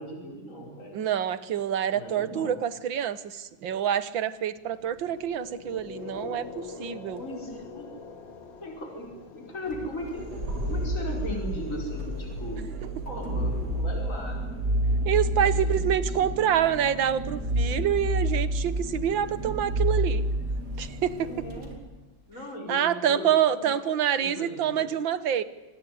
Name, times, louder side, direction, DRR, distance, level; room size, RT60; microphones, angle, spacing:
voice 1, 0.0-1.1 1.9-2.6 7.2-7.9 8.6-10.2 10.6-12.7 13.1-14.4 15.4-16.4 21.2-21.7 22.3-24.9, left 1 dB, 40° left, 0 dB, 5.4 m, -38 dB
voice 2, 0.9-7.2 15.1-20.2 20.8-21.5 22.7-25.4, right 9 dB, 85° right, 15 dB, 2.0 m, -27 dB
sound 1, 4.7-12.8, left 4 dB, 75° left, 3.0 m, -44 dB
sound 2, 9.6-21.8, right 1 dB, 60° right, 4.1 m, -29 dB
sound 3, 10.0-17.5, equal, 20° right, 4.0 m, -47 dB
25.5 x 19.0 x 9.6 m, 1.1 s
omnidirectional pair, 2.0 m